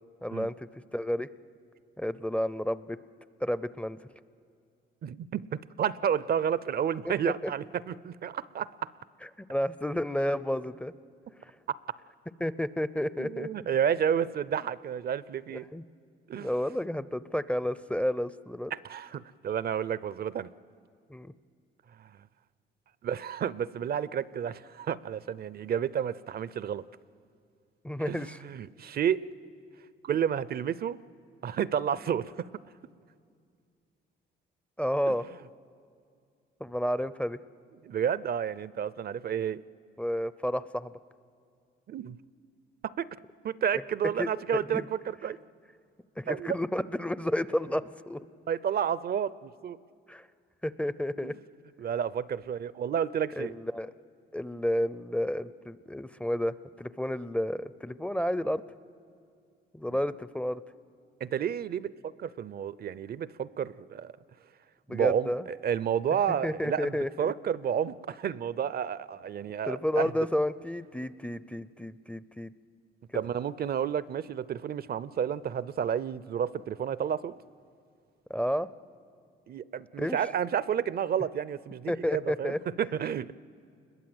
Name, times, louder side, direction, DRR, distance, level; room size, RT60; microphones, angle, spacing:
voice 1, 0.2-1.3 2.0-3.0 3.4-4.0 7.0-7.1 7.4-7.5 9.5-10.9 11.4-11.5 12.4-13.5 15.5-15.8 16.3-18.7 21.1-21.3 27.8-28.4 34.8-35.2 36.6-37.4 40.0-40.9 44.2-44.9 46.2-48.2 50.1-50.3 50.6-51.3 53.4-53.9 54.3-58.6 59.7-60.6 64.9-65.4 66.4-67.3 69.7-72.5 78.3-78.7 80.0-80.2 81.9-82.6, equal, 5° left, 15 dB, 0.5 m, -31 dB
voice 2, 5.0-8.7 13.2-15.7 16.3-16.5 18.7-20.5 22.0-22.1 23.0-26.8 28.0-29.2 30.0-31.0 31.4-32.5 35.1-35.2 37.8-39.6 41.9-42.2 42.8-43.1 43.4-45.4 46.3-46.6 48.5-49.8 51.2-51.3 51.8-53.5 59.9-60.0 61.2-64.1 64.9-70.1 73.1-77.3 79.5-83.3, right 8 dB, 50° right, 18 dB, 0.5 m, -31 dB
27.5 x 21.5 x 7.8 m, 2.3 s
cardioid pair, 90°, 20 cm